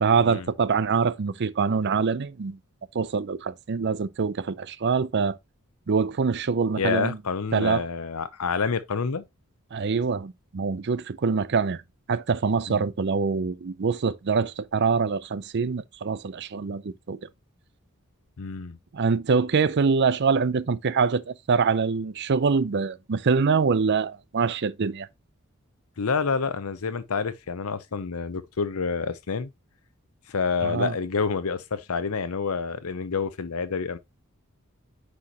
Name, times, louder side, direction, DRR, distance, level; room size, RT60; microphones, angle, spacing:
voice 1, 0.0-2.6 2.9-5.4 5.9-7.2 7.5-7.9 9.7-11.8 12.1-17.2 18.9-25.1 30.6-30.9, right 5 dB, 55° right, 0.5 m, -24 dB
voice 2, 6.8-9.2 12.7-12.8 18.4-18.8 26.0-29.5 30.3-34.0, left 5 dB, 90° left, 0.7 m, -28 dB
9.6 x 4.4 x 2.9 m
head